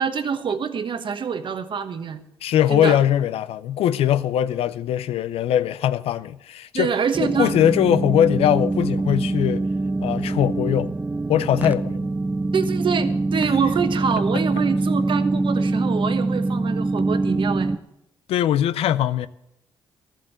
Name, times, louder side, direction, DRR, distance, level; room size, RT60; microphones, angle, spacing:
voice 1, 0.0-2.2 2.7-3.0 6.7-7.5 12.5-17.7, right 6 dB, 55° right, 1.2 m, -25 dB
voice 2, 2.4-6.9 7.2-9.7 10.0-10.9 11.3-12.1 18.3-19.3, left 11 dB, 75° left, 0.5 m, -21 dB
sound 1, 7.1-17.8, right 2 dB, 15° right, 0.6 m, -24 dB
13.0 x 7.6 x 7.9 m
supercardioid pair, 60°, 10 cm